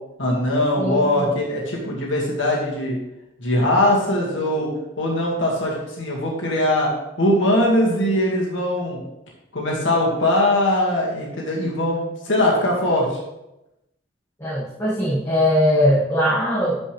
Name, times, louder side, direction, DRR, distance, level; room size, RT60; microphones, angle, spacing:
voice 1, 0.2-3.0 3.4-4.7 5.0-6.9 7.2-9.0 9.5-13.2, left 1 dB, 65° left, -3 dB, 2.1 m, -21 dB
voice 2, 0.8-1.3 14.4-16.8, equal, 15° left, -8 dB, 1.6 m, -20 dB
12.5 x 5.3 x 3.3 m, 0.92 s
head